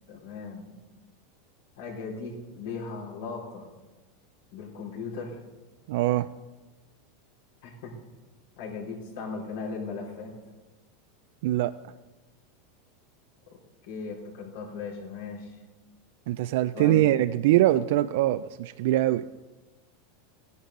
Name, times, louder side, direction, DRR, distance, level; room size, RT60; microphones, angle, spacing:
voice 1, 0.1-0.7 1.8-3.7 4.5-5.4 7.6-7.9 8.6-10.3 13.8-15.6 16.7-17.1, left 4 dB, 80° left, -3 dB, 4.3 m, -37 dB
voice 2, 5.9-6.3 11.4-11.7 16.3-19.2, right 14 dB, 70° right, 12 dB, 0.4 m, -23 dB
15.5 x 10.5 x 3.9 m, 1.2 s
supercardioid pair, 140°, 0 cm